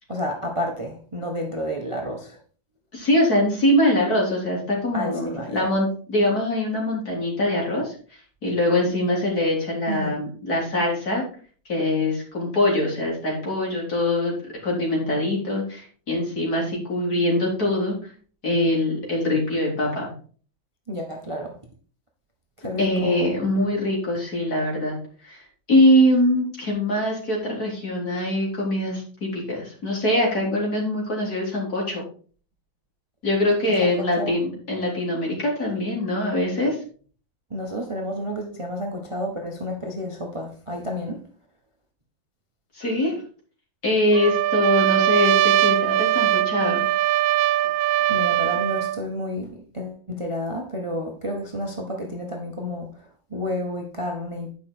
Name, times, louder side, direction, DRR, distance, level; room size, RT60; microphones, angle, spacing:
voice 1, 0.1-2.4 4.9-5.7 9.9-10.1 20.9-21.6 22.6-23.3 33.8-34.3 37.5-41.2 47.6-47.7 48.1-54.5, equal, 20° right, 1.1 m, -31 dB
voice 2, 2.9-11.2 11.7-14.3 14.6-18.0 18.4-20.1 22.8-25.0 25.2-25.4 25.7-32.0 33.2-36.8 42.7-43.2 43.8-46.8, left 1 dB, 50° left, 4.0 m, -23 dB
Trumpet, 44.1-49.0, right 13 dB, 80° right, 1.3 m, -21 dB
9.7 x 5.9 x 4.5 m
omnidirectional pair, 2.1 m